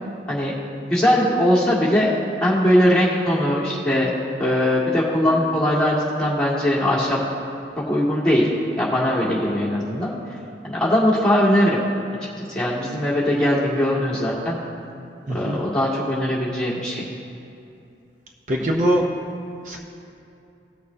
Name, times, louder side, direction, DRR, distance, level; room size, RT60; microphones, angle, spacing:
voice 1, 0.3-0.6 0.9-4.1 4.4-7.2 7.9-8.5 8.8-10.1 10.6-11.8 12.5-14.6 15.3-17.0, left 1 dB, 5° left, -8 dB, 1.9 m, -20 dB
voice 2, 15.3-15.6 18.5-19.0 19.6-19.8, right 1 dB, 45° right, 0 dB, 0.7 m, -21 dB
18.5 x 6.6 x 2.7 m, 2.6 s
head